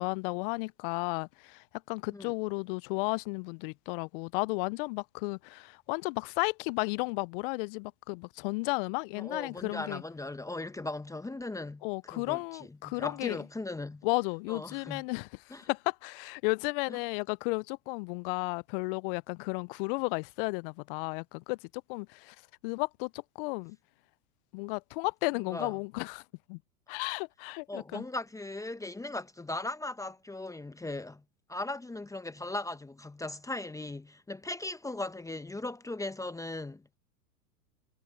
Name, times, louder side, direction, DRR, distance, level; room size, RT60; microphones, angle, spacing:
voice 1, 0.0-10.0 11.8-13.4 14.0-21.6 21.9-22.4 22.6-23.8 24.5-26.2 26.5-26.6 26.9-28.0, left 29 dB, 40° left, 0.4 m, -33 dB
voice 2, 9.2-12.4 12.7-14.0 14.5-15.0 15.5-15.6 16.9-17.0 25.5-25.7 27.7-31.2 31.5-36.9, left 2 dB, 5° left, 1.2 m, -38 dB
hypercardioid pair, 95°, 43 cm